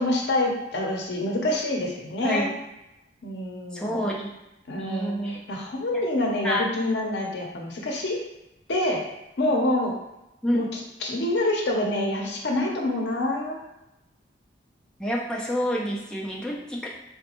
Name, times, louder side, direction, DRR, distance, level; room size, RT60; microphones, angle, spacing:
voice 1, 0.0-2.5 3.2-4.1 4.7-8.2 8.7-9.0 9.4-9.9 10.5-13.6, left 1 dB, 75° left, 0 dB, 0.6 m, -26 dB
voice 2, 2.2-2.6 3.7-4.3 4.8-5.4 5.9-6.0 6.4-6.7 10.4-10.7 15.0-16.9, equal, 5° left, -3 dB, 0.4 m, -28 dB
3.9 x 2.2 x 3.0 m, 0.91 s
head